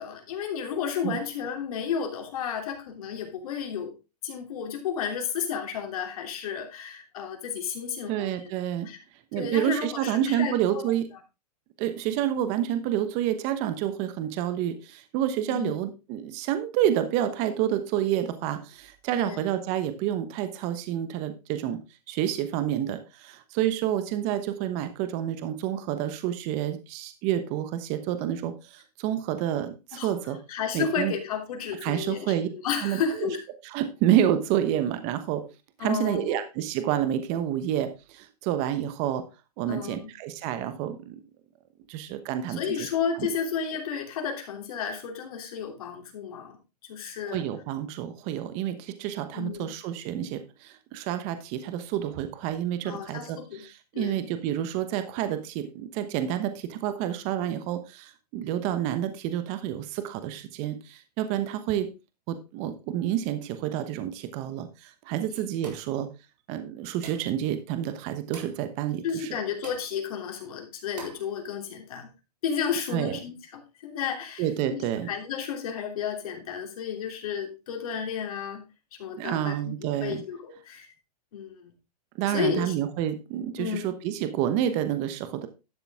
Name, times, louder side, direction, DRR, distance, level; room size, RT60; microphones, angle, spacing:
voice 1, 0.0-3.9 4.2-8.5 8.8-9.0 9.3-10.8 15.5-15.8 19.1-19.5 29.9-30.1 30.5-33.5 35.8-36.4 39.7-40.1 42.5-46.6 46.8-47.5 49.3-49.7 52.8-53.6 53.9-54.2 69.0-72.1 72.4-74.5 74.7-78.6 78.9-79.7 80.0-80.9 81.3-81.7 82.3-82.7 83.6-83.9, left 7 dB, 60° left, 4 dB, 3.1 m, -32 dB
voice 2, 8.1-8.9 9.3-11.1 11.8-21.8 22.1-30.4 30.7-31.1 31.8-32.5 32.8-33.3 33.6-35.5 35.8-39.3 39.6-41.2 41.9-42.9 43.2-43.3 47.3-61.9 62.3-66.1 66.5-69.3 72.9-73.2 74.4-75.1 79.2-80.2 82.2-85.5, right 11 dB, 30° right, 10 dB, 1.1 m, -29 dB
sound 1, 65.6-66.0 67.0-67.4 68.3-68.6 69.6-69.9 71.0-71.3, right 4 dB, 90° right, 4.3 m, -43 dB
12.0 x 6.9 x 3.5 m, 0.28 s
hypercardioid pair, 145°, 21 cm